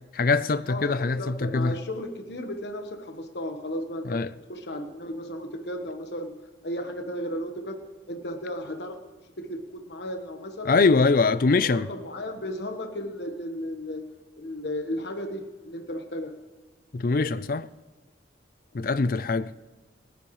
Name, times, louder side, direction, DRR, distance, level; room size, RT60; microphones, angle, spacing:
voice 1, 0.1-1.8 4.0-4.3 10.6-11.9 16.9-17.7 18.7-19.5, left 4 dB, 50° left, 0.5 m, -23 dB
voice 2, 0.7-4.2 4.5-6.4 6.6-7.8 8.1-10.8 11.6-14.1 14.4-16.4, left 1 dB, 70° left, 1.3 m, -34 dB
27.5 x 10.0 x 3.2 m
head